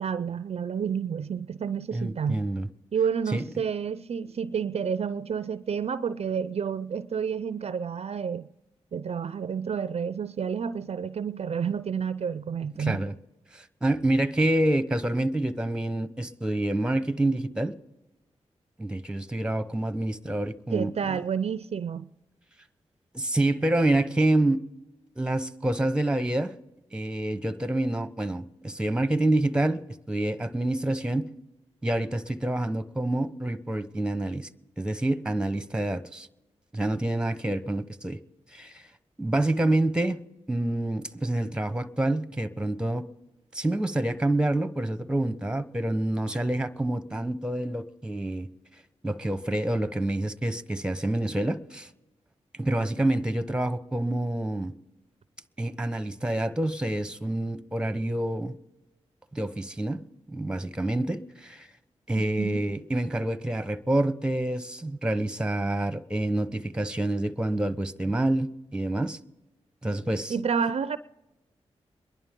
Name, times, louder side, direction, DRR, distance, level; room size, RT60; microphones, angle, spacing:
voice 1, 0.0-2.4 2.9-8.5 8.9-13.0 20.7-22.1 62.4-62.6 70.3-71.0, right 7 dB, 60° right, 0.5 m, -30 dB
voice 2, 1.9-2.7 3.3-3.4 12.8-13.1 13.5-17.7 18.8-21.2 23.1-24.6 25.2-26.5 26.9-31.3 31.8-34.5 34.8-36.3 36.7-38.2 38.5-38.9 39.2-40.2 40.5-43.0 43.5-48.5 49.0-51.9 52.5-54.7 55.6-58.6 59.3-60.0 60.3-61.7 62.1-69.2 69.8-70.3, right 1 dB, 10° right, 1.0 m, -27 dB
24.0 x 11.0 x 3.7 m
cardioid pair, 45°, 12 cm